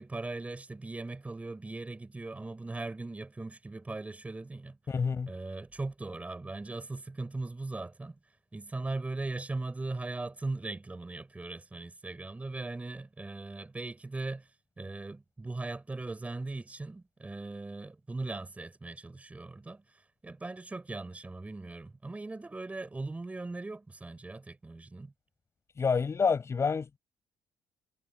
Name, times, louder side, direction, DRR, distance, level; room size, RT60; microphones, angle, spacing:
voice 1, 0.0-4.9 5.3-8.2 8.5-14.5 14.8-25.1, right 2 dB, 15° right, 6.9 m, -39 dB
voice 2, 4.9-5.3 25.8-27.0, left 5 dB, 30° left, 7.3 m, -28 dB
cardioid pair, 110°, 9 cm